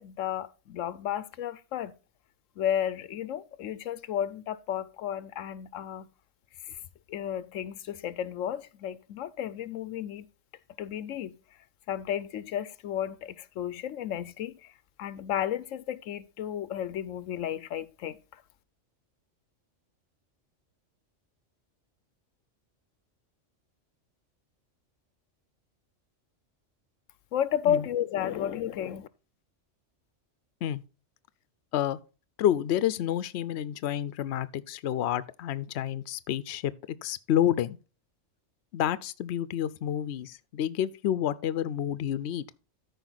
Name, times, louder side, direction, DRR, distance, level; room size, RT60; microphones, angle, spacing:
voice 1, 0.0-1.9 2.6-6.1 6.7-6.8 7.1-10.3 10.8-11.4 11.9-14.7 15.0-18.4 27.3-29.1, left 10 dB, 85° left, 1.0 m, -33 dB
voice 2, 32.4-37.8 38.7-42.5, left 11 dB, 65° left, 0.9 m, -29 dB
13.5 x 5.1 x 3.9 m
omnidirectional pair, 1.3 m